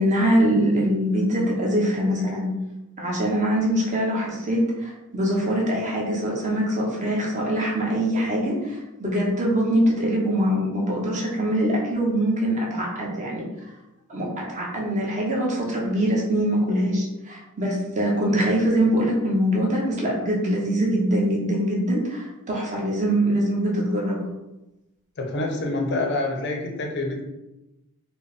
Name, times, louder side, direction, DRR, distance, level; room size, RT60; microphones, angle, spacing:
voice 1, 0.0-2.5 3.0-13.5 14.1-24.2, right 1 dB, 35° right, -3 dB, 0.8 m, -23 dB
voice 2, 25.2-27.2, left 2 dB, 55° left, 1 dB, 0.6 m, -26 dB
4.1 x 2.1 x 3.5 m, 0.96 s
head